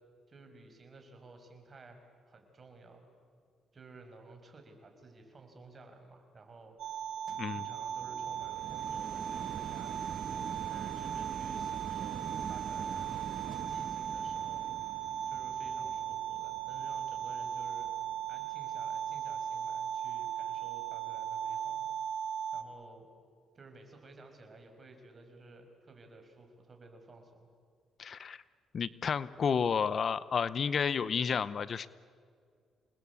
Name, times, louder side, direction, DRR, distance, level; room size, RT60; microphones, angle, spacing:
voice 1, 0.3-3.0 3.7-7.0 7.3-14.7 15.3-17.9 18.3-21.9 22.5-23.1 23.5-27.5, right 3 dB, 35° right, 5 dB, 5.7 m, -54 dB
sound 1, 6.8-22.6, right 9 dB, 75° right, 2.1 m, -37 dB
sound 2, 7.3-18.5 19.1-19.2, right 7 dB, 60° right, 1.4 m, -45 dB
voice 2, 28.0-28.4 28.7-31.9, left 6 dB, 50° left, 17 dB, 0.7 m, -31 dB
28.5 x 20.5 x 8.4 m, 2.1 s
cardioid pair, 90°, 0 cm